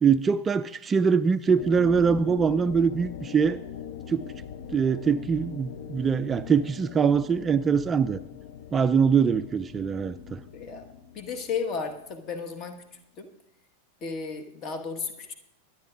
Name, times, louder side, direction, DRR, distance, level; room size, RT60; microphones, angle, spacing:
voice 1, 0.0-3.6 4.1-4.2 4.7-8.2 8.7-10.4, right 6 dB, 20° right, 13 dB, 0.3 m, -23 dB
sound 1, 1.5-12.7, left 8 dB, 55° left, 0.8 m, -41 dB
voice 2, 10.5-10.9 11.1-12.7 13.2-13.3 14.0-15.3, left 5 dB, 35° left, 6 dB, 1.5 m, -33 dB
23.5 x 9.9 x 2.5 m, 0.82 s
figure-of-eight pair, 90°, 0 cm